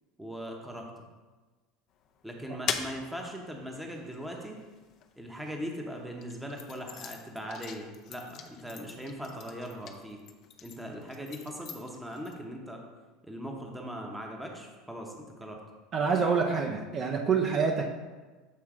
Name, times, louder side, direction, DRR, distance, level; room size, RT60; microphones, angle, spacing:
voice 1, 0.2-0.9 2.2-4.6 5.2-10.2 10.6-12.8 13.2-15.6, equal, 5° right, 1 dB, 0.9 m, -40 dB
sound 1, 1.9-5.5 6.1-12.4, left 8 dB, 50° left, 0.5 m, -42 dB
voice 2, 15.9-17.9, right 5 dB, 40° right, 1 dB, 0.6 m, -26 dB
7.4 x 3.1 x 4.8 m, 1.3 s
supercardioid pair, 130°, 0 cm